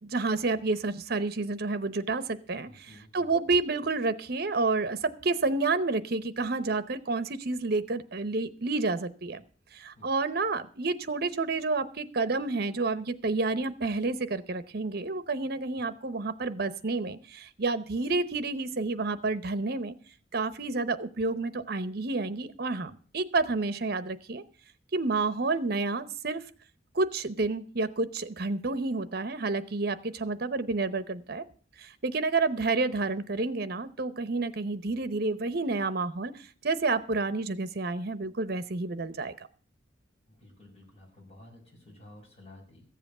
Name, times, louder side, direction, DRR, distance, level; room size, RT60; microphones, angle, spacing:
voice 1, 0.0-9.4 9.7-20.0 20.3-24.4 24.9-26.4 26.9-31.4 31.8-39.3, right 3 dB, 55° right, 14 dB, 0.8 m, -29 dB
voice 2, 2.6-3.3 10.0-10.1 15.8-15.9 40.3-42.8, left 1 dB, 35° left, -1 dB, 5.8 m, -53 dB
14.5 x 7.8 x 6.7 m, 0.42 s
head